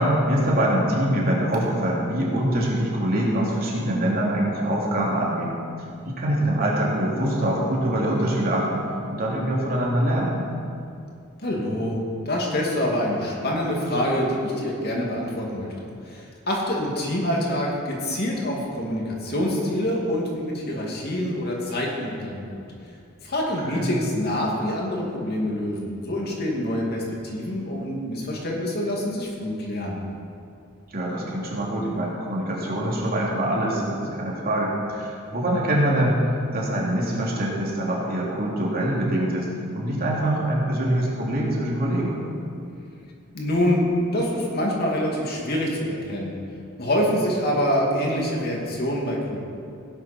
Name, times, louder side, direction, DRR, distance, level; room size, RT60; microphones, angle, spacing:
voice 1, 0.0-5.6 6.1-10.5 23.6-23.9 30.9-36.2 36.5-39.5 39.7-42.2, right 1 dB, 45° right, -4 dB, 3.0 m, -24 dB
voice 2, 11.4-12.0 12.3-22.6 23.2-30.0 43.3-46.4 46.8-49.4, left 1 dB, 45° left, -2 dB, 2.5 m, -26 dB
18.0 x 11.0 x 4.5 m, 2.5 s
head